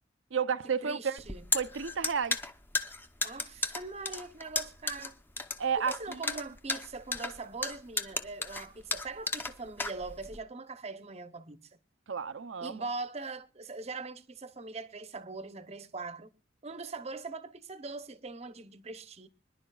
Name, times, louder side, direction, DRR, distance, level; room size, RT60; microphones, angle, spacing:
voice 1, 0.3-1.2 1.5-2.4 5.6-6.4 12.1-12.8, right 6 dB, 85° right, 0.6 m, -32 dB
voice 2, 0.8-1.5 3.2-5.1 5.8-11.7 12.6-16.3 16.6-19.3, right 3 dB, 35° right, 0.8 m, -41 dB
sound 1, 1.2-10.4, left 3 dB, 10° left, 0.7 m, -34 dB
25.5 x 10.5 x 2.3 m
head